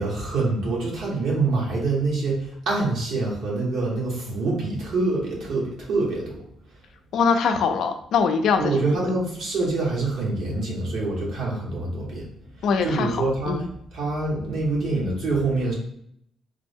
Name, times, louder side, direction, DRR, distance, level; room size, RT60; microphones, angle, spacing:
voice 1, 0.0-6.4 8.6-12.3 12.8-13.7 13.9-15.7, right 3 dB, 80° right, -3 dB, 1.2 m, -25 dB
voice 2, 7.1-9.1 12.6-13.1 13.5-13.7, left 5 dB, 75° left, 6 dB, 0.4 m, -22 dB
3.4 x 2.1 x 3.4 m, 0.71 s
cardioid pair, 90°, 0 cm